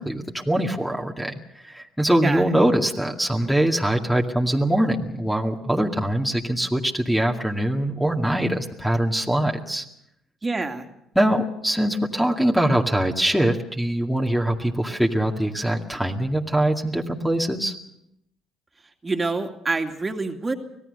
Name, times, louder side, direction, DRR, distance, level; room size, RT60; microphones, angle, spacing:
voice 1, 0.0-9.8 11.2-17.7, right 1 dB, ahead, 0 dB, 2.1 m, -23 dB
voice 2, 10.4-10.9 19.0-20.5, right 3 dB, 25° right, 5 dB, 2.5 m, -26 dB
25.0 x 17.5 x 6.7 m, 0.78 s
hypercardioid pair, 65°, 0 cm